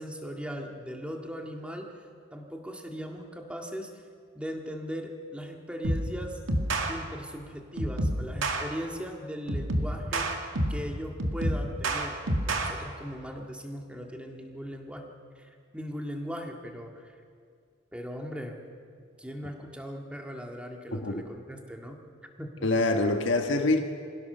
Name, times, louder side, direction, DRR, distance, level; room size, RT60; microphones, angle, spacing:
voice 1, 0.0-2.1 2.3-4.0 4.3-6.4 6.9-10.3 10.7-15.1 15.4-17.1 17.9-18.6 19.2-22.0 22.4-22.7, equal, 5° right, 2 dB, 1.9 m, -39 dB
sound 1, 5.8-6.1 6.5-6.9 7.8-8.6 9.5-10.9 11.2-12.7, right 1 dB, 85° right, 2.1 m, -28 dB
voice 2, 20.9-21.2 22.6-23.8, left 2 dB, 70° left, 4 dB, 1.5 m, -25 dB
25.0 x 16.5 x 6.8 m, 2.1 s
head